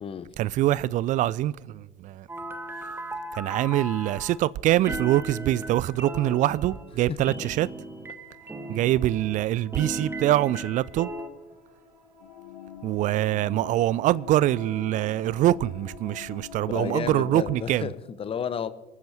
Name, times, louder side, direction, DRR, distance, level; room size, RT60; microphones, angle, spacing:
voice 1, 0.4-2.3 3.3-7.7 8.7-11.1 12.8-17.9, right 14 dB, 35° right, 0.4 m, -24 dB
sound 1, 2.3-4.4 4.8-9.4 9.7-11.3, right 1 dB, 10° right, 1.5 m, -37 dB
sound 2, 6.9-17.8, left 2 dB, 85° right, 2.0 m, -52 dB
sound 3, 12.2-17.9, left 12 dB, 60° left, 0.9 m, -45 dB
voice 2, 16.6-18.7, left 7 dB, 25° left, 0.9 m, -32 dB
28.5 x 14.5 x 2.9 m
figure-of-eight pair, 65°, 21 cm